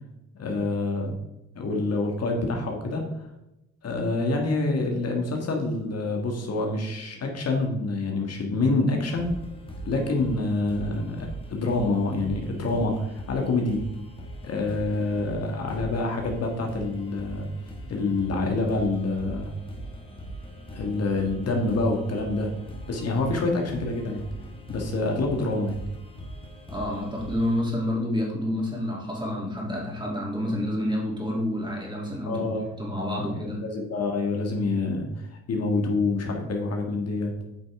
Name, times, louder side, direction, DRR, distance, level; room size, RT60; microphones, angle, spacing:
voice 1, 0.3-1.2 1.6-3.0 3.8-9.3 9.9-13.9 14.4-17.5 17.9-19.5 20.7-22.5 22.9-24.3 24.7-25.8 32.3-32.7 33.2-37.3, left 2 dB, 55° left, 2 dB, 1.7 m, -27 dB
sound 1, 9.0-27.6, right 1 dB, 15° left, 1.9 m, -41 dB
voice 2, 26.7-33.6, left 1 dB, 15° right, -2 dB, 3.0 m, -29 dB
9.1 x 5.4 x 3.6 m, 0.90 s
cardioid pair, 90°, 30 cm